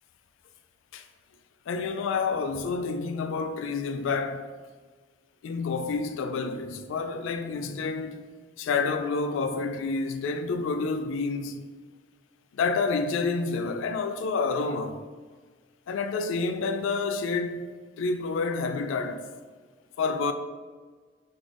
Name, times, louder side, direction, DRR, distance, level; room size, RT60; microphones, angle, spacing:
voice 1, 1.7-4.5 5.4-8.3 8.6-11.7 12.5-15.0 15.9-17.7 18.0-19.3 20.0-20.3, left 4 dB, 70° left, 0.3 m, -29 dB
3.7 x 3.2 x 2.5 m
head